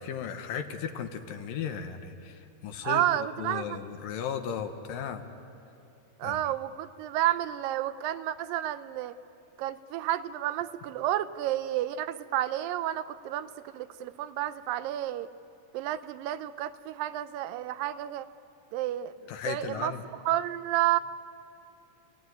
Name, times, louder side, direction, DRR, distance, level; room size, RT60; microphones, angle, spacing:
voice 1, 0.0-2.3 2.6-3.0 3.4-5.2 6.2-6.4 19.3-20.0, left 7 dB, 85° left, 6 dB, 3.1 m, -35 dB
voice 2, 2.8-3.8 6.2-9.1 9.6-15.3 15.7-18.3 18.7-19.1 19.5-19.9 20.3-21.0, right 13 dB, 85° right, 13 dB, 2.5 m, -30 dB
28.5 x 18.0 x 9.6 m, 2.8 s
omnidirectional pair, 3.9 m